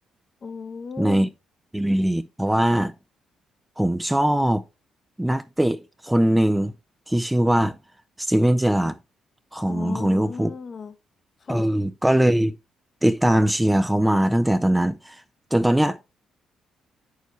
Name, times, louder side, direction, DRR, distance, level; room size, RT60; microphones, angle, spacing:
voice 1, 0.4-1.2 9.7-10.9 11.4-11.7, left 5 dB, 45° left, 0.9 m, -35 dB
voice 2, 1.0-1.3 1.7-2.9 3.8-4.6 5.2-6.7 7.1-7.8 8.2-8.9 9.5-10.5 11.5-12.5 13.0-15.2 15.5-16.0, right 1 dB, 5° right, 0.4 m, -21 dB
8.1 x 6.5 x 3.2 m
cardioid pair, 90°, 0 cm